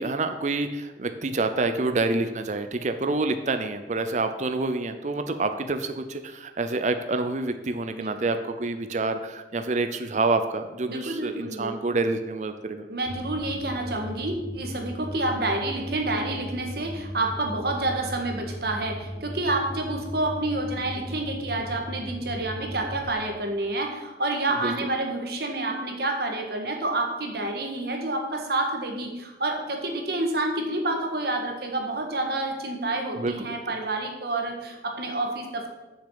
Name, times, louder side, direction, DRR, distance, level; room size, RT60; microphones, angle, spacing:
voice 1, 0.0-12.8 24.6-24.7 33.1-33.6, right 3 dB, 40° right, 8 dB, 0.6 m, -27 dB
voice 2, 10.9-11.8 12.9-35.7, right 2 dB, 60° right, 3 dB, 1.7 m, -28 dB
sound 1, 13.1-23.1, equal, 90° left, 3.4 m, -37 dB
7.0 x 6.6 x 7.5 m, 1.1 s
head